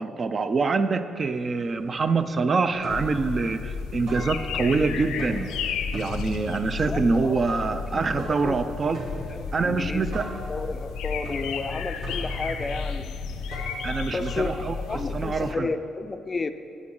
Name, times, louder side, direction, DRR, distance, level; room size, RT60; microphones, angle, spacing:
voice 1, 0.0-5.5 5.9-9.0 9.5-10.3 13.8-15.7, right 4 dB, 40° right, 10 dB, 0.4 m, -25 dB
sound 1, 1.3-1.4 1.7-2.3 2.6-4.8 5.1-15.2, right 1 dB, 90° right, 2.5 m, -42 dB
sound 2, 2.9-15.5, left 5 dB, 90° left, 0.5 m, -33 dB
voice 2, 6.8-8.6 9.3-10.1 10.5-13.1 14.1-14.5 14.8-16.5, left 3 dB, 30° left, 10 dB, 0.4 m, -32 dB
9.9 x 8.7 x 3.8 m, 2.6 s
cardioid pair, 90°, 0 cm